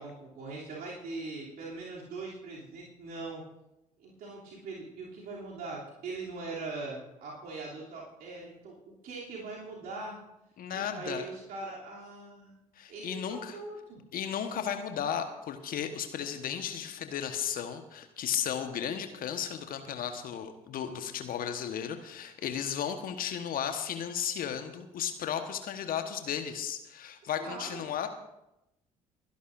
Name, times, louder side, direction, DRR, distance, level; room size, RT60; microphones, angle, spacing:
voice 1, 0.0-3.4 4.0-10.2 10.7-12.6 12.9-14.0 27.4-27.9, right 3 dB, 55° right, -5 dB, 3.0 m, -41 dB
voice 2, 10.6-11.3 12.8-13.6 14.1-28.1, left 8 dB, 50° left, 7 dB, 1.3 m, -34 dB
28.5 x 11.0 x 2.6 m, 0.89 s
figure-of-eight pair, 50°, 18 cm